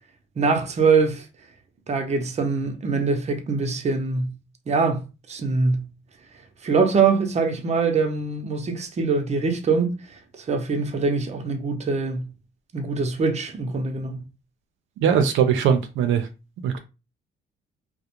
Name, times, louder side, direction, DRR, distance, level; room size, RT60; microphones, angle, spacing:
voice 1, 0.4-1.2 1.9-4.3 4.7-5.9 6.6-10.0 10.4-12.3 12.7-14.2, right 4 dB, 35° right, 0.6 m, -23 dB
voice 2, 15.0-16.3 16.6-16.8, right 7 dB, 80° right, 0.4 m, -20 dB
2.4 x 2.0 x 2.8 m
cardioid pair, 90°, 20 cm